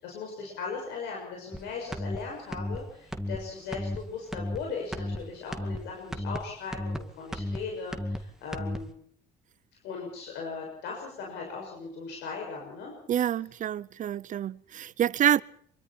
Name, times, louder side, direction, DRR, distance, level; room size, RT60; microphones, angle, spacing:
voice 1, 0.0-8.9 9.8-12.9, left 5 dB, 85° left, 6.9 m, -38 dB
sound 1, 1.5-1.6 1.9-2.2 2.5-2.8 3.1-3.4 3.7-4.0 4.3-4.6 4.9-5.2 5.5-5.8 6.1-6.4 6.7-7.0 7.3-7.6 7.9-8.2 8.5-8.8, left 1 dB, 5° right, 2.2 m, -33 dB
voice 2, 13.1-15.4, right 10 dB, 50° right, 0.8 m, -27 dB
26.5 x 23.5 x 4.5 m
cardioid pair, 110°, 17 cm